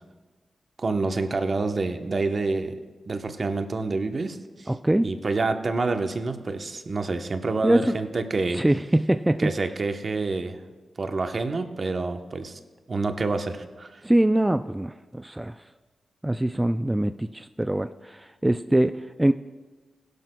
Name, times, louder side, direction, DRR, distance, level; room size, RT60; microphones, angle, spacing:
voice 1, 0.8-2.8 3.0-4.7 5.0-8.6 9.4-10.6 11.0-12.6 12.9-14.0, right 3 dB, 50° right, 7 dB, 0.9 m, -27 dB
voice 2, 4.7-5.1 7.6-7.9 8.5-9.5 14.0-15.6 16.2-19.3, right 1 dB, 15° right, 10 dB, 0.3 m, -23 dB
16.5 x 11.5 x 2.2 m, 1.3 s
cardioid pair, 55°, 0 cm